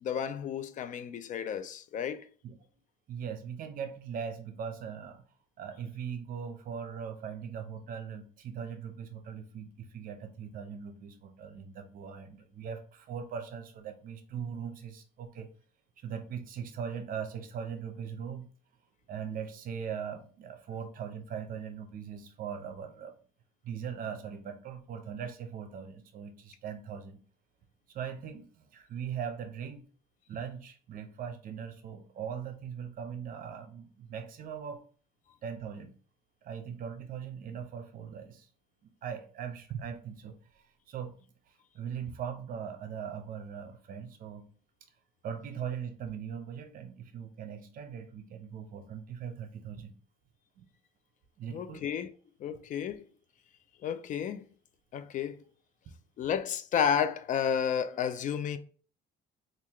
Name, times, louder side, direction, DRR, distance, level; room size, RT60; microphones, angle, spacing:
voice 1, 0.0-2.2 51.5-52.1 52.4-53.0 53.8-54.4 54.9-55.4 56.2-58.6, left 8 dB, 50° left, 0.4 m, -31 dB
voice 2, 3.1-5.2 5.6-15.5 16.0-18.5 19.1-23.1 23.6-27.2 27.9-29.8 30.3-34.8 35.4-35.9 36.4-38.5 39.0-40.4 40.9-41.1 41.7-44.5 45.2-49.9 50.6-50.7 51.4-51.8, right 7 dB, 55° right, 0.7 m, -40 dB
3.7 x 2.4 x 3.0 m
cardioid pair, 110°, 17 cm